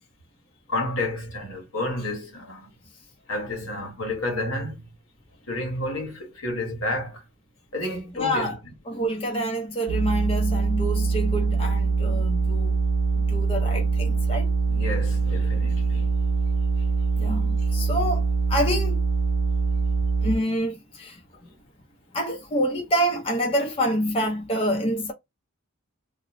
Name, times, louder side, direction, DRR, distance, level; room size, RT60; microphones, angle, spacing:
voice 1, 0.7-2.7 3.3-4.8 5.5-7.2 7.7-8.7 14.7-16.1, left 1 dB, 80° left, 1.2 m, -30 dB
voice 2, 8.1-8.6 8.9-12.7 13.1-14.5 17.2-19.0 20.2-21.2 22.1-25.1, equal, 30° left, 0.6 m, -27 dB
sound 1, 9.9-20.4, right 4 dB, 70° right, 0.5 m, -23 dB
2.5 x 2.0 x 3.0 m
head